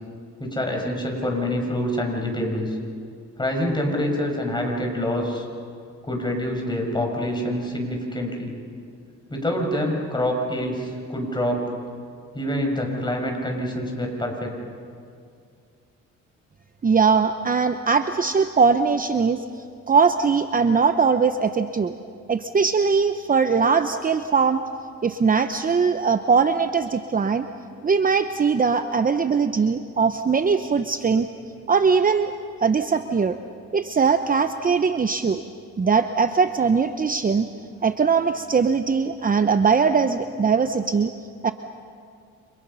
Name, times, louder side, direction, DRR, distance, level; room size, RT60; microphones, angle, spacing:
voice 1, 0.4-2.8 3.4-5.5 6.0-8.5 9.3-11.7 12.3-14.5, left 1 dB, 15° left, 1 dB, 6.3 m, -26 dB
voice 2, 16.8-19.4 19.9-21.9 22.3-24.6 25.0-27.4 27.8-31.3 31.7-32.3 32.6-33.4 33.7-35.4 35.8-37.5 37.8-41.1 41.4-41.5, right 5 dB, 30° right, 9 dB, 0.9 m, -20 dB
30.0 x 27.5 x 5.7 m, 2.3 s
cardioid pair, 90°, 30 cm